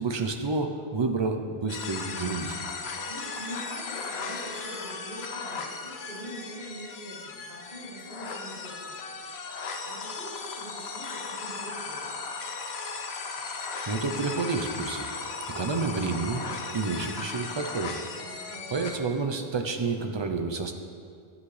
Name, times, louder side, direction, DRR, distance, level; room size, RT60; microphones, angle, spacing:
voice 1, 0.0-2.6 13.4-15.1 15.5-16.4 16.7-18.0 18.7-20.7, right 4 dB, 35° right, 5 dB, 0.4 m, -30 dB
sound 1, 1.7-19.0, left 4 dB, 75° left, 1.0 m, -37 dB
voice 2, 3.1-8.9 9.4-12.2 18.2-18.7, equal, 60° right, -8 dB, 2.9 m, -43 dB
9.7 x 9.7 x 3.2 m, 2.2 s
omnidirectional pair, 1.1 m